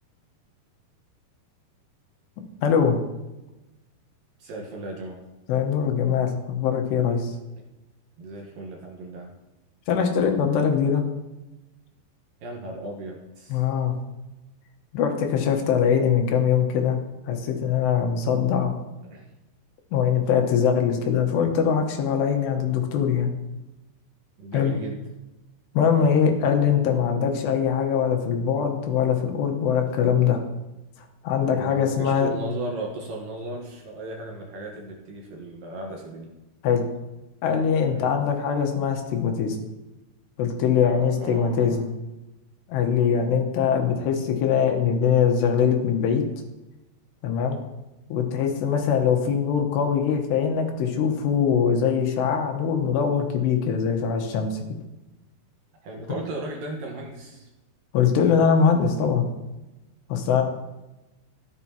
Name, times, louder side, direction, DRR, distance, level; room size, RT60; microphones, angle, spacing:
voice 1, 2.6-3.0 5.5-7.3 9.9-11.0 13.5-13.9 14.9-17.0 17.3-18.7 19.9-23.3 24.5-24.8 25.7-30.4 31.2-32.3 36.6-36.8 37.4-39.6 40.4-41.9 42.7-46.2 47.2-47.6 48.1-54.6 57.9-59.3 60.1-60.4, left 7 dB, 80° left, 3 dB, 3.2 m, -22 dB
voice 2, 4.4-5.2 8.2-9.3 12.4-13.6 19.0-19.2 24.4-25.0 25.9-26.1 31.4-36.3 37.9-38.2 40.8-41.8 55.8-57.5 60.3-60.4, right 1 dB, 65° right, 0 dB, 2.5 m, -36 dB
14.0 x 10.5 x 2.9 m, 1.0 s
omnidirectional pair, 4.9 m